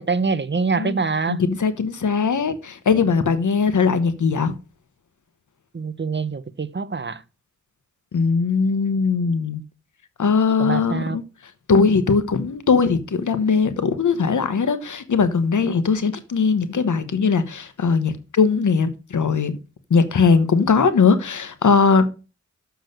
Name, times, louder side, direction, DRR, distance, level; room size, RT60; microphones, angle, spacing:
voice 1, 0.0-1.4 5.7-7.2 10.6-11.2, right 4 dB, 40° right, 0.7 m, -24 dB
voice 2, 1.3-4.5 8.1-9.6 10.2-11.2 11.7-19.5 19.9-22.0, left 5 dB, 85° left, 1.1 m, -20 dB
6.9 x 6.2 x 6.5 m
cardioid pair, 55°, 30 cm